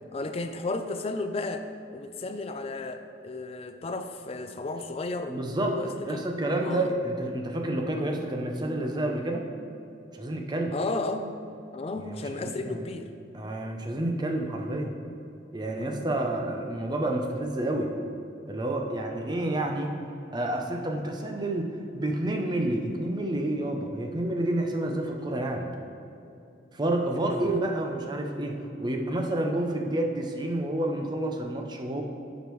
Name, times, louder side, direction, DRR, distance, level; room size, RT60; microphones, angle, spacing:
voice 1, 0.1-5.4 5.7-6.3 6.6-6.9 10.7-11.3 11.7-13.1 15.8-16.0 27.3-27.6, left 2 dB, 30° left, 8 dB, 0.4 m, -33 dB
voice 2, 5.3-5.8 6.1-9.5 10.1-10.7 12.1-12.9 13.3-14.9 15.5-17.9 18.5-19.9 20.3-25.7 26.7-32.0, right 1 dB, 25° right, 2 dB, 0.6 m, -29 dB
10.5 x 5.2 x 3.1 m, 2.7 s
head